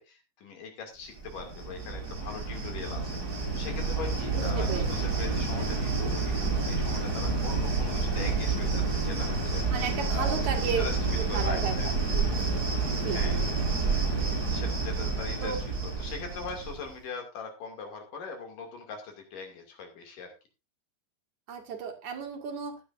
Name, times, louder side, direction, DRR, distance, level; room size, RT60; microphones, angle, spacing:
voice 1, 0.0-11.9 13.0-13.5 14.5-15.6 16.0-20.3, left 5 dB, 70° left, 3 dB, 4.1 m, -41 dB
Cricket, 1.2-16.9, right 4 dB, 25° right, 4.0 m, -29 dB
voice 2, 4.3-4.9 9.7-10.9 11.2-12.6 12.9-13.5 15.4-15.6 21.5-22.8, right 6 dB, 60° right, 4 dB, 3.0 m, -34 dB
15.5 x 11.0 x 2.6 m, 0.26 s
omnidirectional pair, 3.9 m